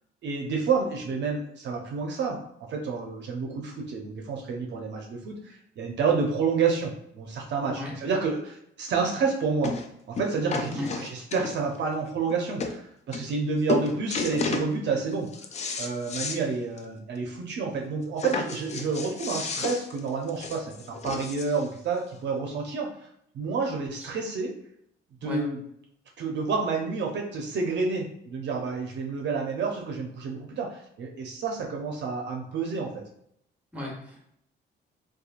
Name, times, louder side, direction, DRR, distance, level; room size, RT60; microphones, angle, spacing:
voice 1, 0.2-2.4 2.7-9.7 10.1-15.3 15.8-22.9 23.3-24.5 25.2-25.6 26.2-32.9, right 4 dB, 65° right, 1 dB, 0.5 m, -29 dB
sound 1, 8.9-9.0 9.6-9.9 10.2-11.8 12.3-12.4 12.6-12.8 13.1-13.4 13.7-14.7 15.1-16.4 16.8-16.9 17.2-17.3 18.2-21.6 22.5-22.6, left 4 dB, 35° left, 0.4 m, -32 dB
voice 2, 33.7-34.2, left 1 dB, 5° right, -2 dB, 0.9 m, -35 dB
2.8 x 2.2 x 2.4 m, 0.72 s
cardioid pair, 90°, 20 cm